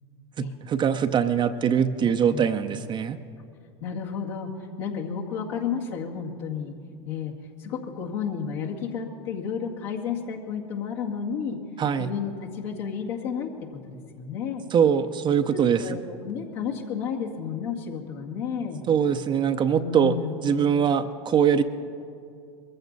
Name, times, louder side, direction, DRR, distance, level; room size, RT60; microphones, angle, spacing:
voice 1, 0.4-3.2 11.8-12.1 14.7-16.0 18.9-20.2 20.4-21.6, right 7 dB, 35° right, 8 dB, 0.7 m, -22 dB
voice 2, 2.0-2.4 3.8-4.5 4.8-6.7 7.0-7.3 7.6-11.6 12.0-13.5 13.9-14.6 15.5-18.9 19.8-20.6, left 6 dB, 70° left, 0 dB, 2.1 m, -32 dB
22.0 x 14.5 x 4.1 m, 2.3 s
hypercardioid pair, 90°, 15 cm